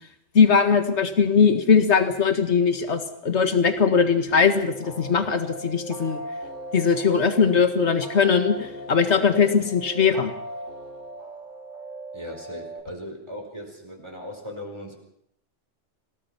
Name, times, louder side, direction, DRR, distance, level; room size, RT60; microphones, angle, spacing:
voice 1, 0.3-6.2 6.7-10.3, left 6 dB, 70° left, 8 dB, 2.0 m, -20 dB
sound 1, 4.3-12.8, right 1 dB, 65° right, 4.8 m, -38 dB
voice 2, 12.1-15.0, left 1 dB, 25° right, 1 dB, 4.8 m, -38 dB
26.5 x 18.5 x 6.0 m, 0.70 s
omnidirectional pair, 1.2 m